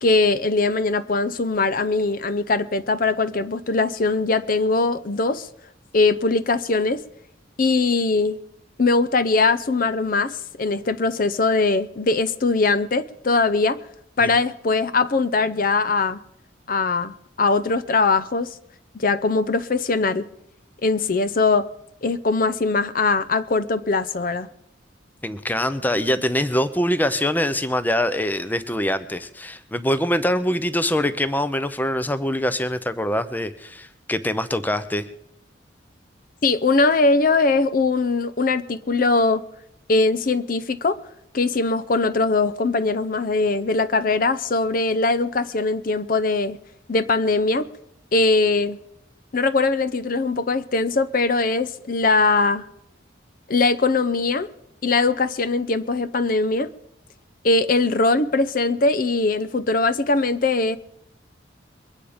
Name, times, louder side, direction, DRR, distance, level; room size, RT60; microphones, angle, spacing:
voice 1, 0.0-5.5 5.9-7.0 7.6-8.4 8.8-13.8 14.2-16.2 16.7-18.5 18.9-20.3 20.8-21.7 22.0-24.5 36.4-39.4 39.9-41.0 41.3-46.6 46.9-47.7 48.1-48.8 49.3-52.7 53.5-54.5 54.8-56.7 57.4-60.8, left 3 dB, 50° left, 0.6 m, -21 dB
voice 2, 25.2-35.1, left 1 dB, 10° left, 0.6 m, -24 dB
22.5 x 9.2 x 5.1 m
head